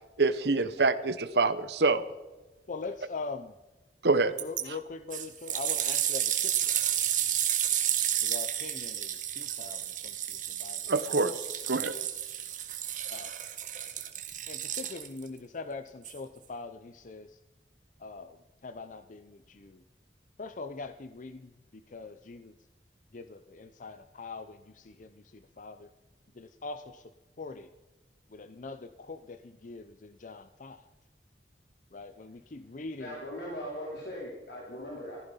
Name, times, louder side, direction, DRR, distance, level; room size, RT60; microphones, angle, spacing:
voice 1, 0.2-2.0 4.0-4.3 10.9-11.9, right 3 dB, 65° right, 13 dB, 1.0 m, -26 dB
voice 2, 2.7-3.6 4.4-6.7 8.2-10.9 13.1-13.3 14.5-17.4 18.0-19.8 20.4-21.5 21.9-22.5 23.1-25.9 26.4-27.1 27.4-27.7 28.3-30.8 31.9-33.2, left 3 dB, 45° left, 10 dB, 0.6 m, -42 dB
sound 1, 4.4-4.6 5.1-15.3 16.0-16.1, right 11 dB, 45° right, 1.5 m, -31 dB
voice 3, 33.0-35.2, equal, 65° left, -4 dB, 3.5 m, -39 dB
15.0 x 14.5 x 5.7 m, 1.1 s
head